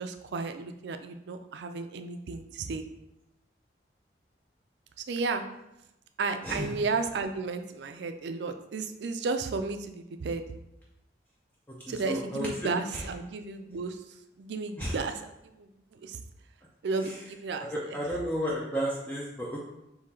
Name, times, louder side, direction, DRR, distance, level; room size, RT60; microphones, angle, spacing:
voice 1, 0.0-2.8 5.1-5.4 6.2-10.4 11.9-14.0 14.4-15.2 15.6-15.7 16.0-16.2 16.8-17.7, right 4 dB, 80° right, 8 dB, 0.4 m, -33 dB
voice 2, 11.9-12.5 12.9-13.0 14.8-14.9 17.0-17.1 17.7-19.6, equal, 10° left, -5 dB, 0.4 m, -32 dB
3.7 x 2.8 x 4.2 m, 0.89 s
head